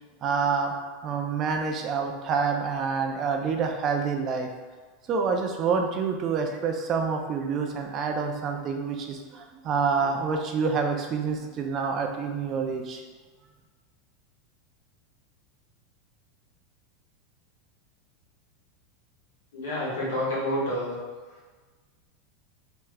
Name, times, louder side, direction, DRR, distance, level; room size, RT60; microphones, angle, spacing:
voice 1, 0.2-0.7 1.0-4.5 5.1-13.0, right 5 dB, 40° right, 3 dB, 0.4 m, -27 dB
voice 2, 19.5-20.9, left 1 dB, 90° left, -7 dB, 1.4 m, -28 dB
3.4 x 3.0 x 2.3 m, 1.4 s
supercardioid pair, 125°, 0 cm